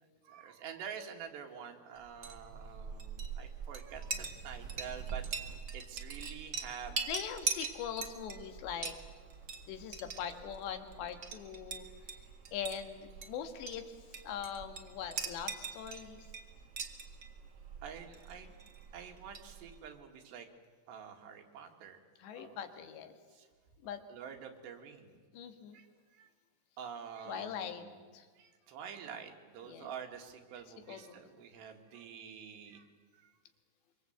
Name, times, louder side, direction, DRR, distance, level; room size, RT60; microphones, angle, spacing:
voice 1, 0.2-5.2 5.7-7.0 17.8-18.6 18.9-20.5 20.9-22.0 22.3-22.6 23.3-23.5 24.1-25.2 25.7-25.9 26.2-26.3 26.8-28.0 28.4-32.9 33.1-33.3, right 7 dB, 80° right, 4 dB, 4.1 m, -47 dB
Chink clink, 2.0-19.9, right 6 dB, 60° right, 1.0 m, -43 dB
voice 2, 7.1-8.9 9.7-12.1 12.5-16.3 22.2-23.1 23.8-24.0 25.3-25.8 27.3-27.8 28.1-28.3 29.6-29.9 30.8-31.2, left 8 dB, 85° left, 7 dB, 3.8 m, -42 dB
25.0 x 24.5 x 8.0 m, 1.5 s
omnidirectional pair, 4.9 m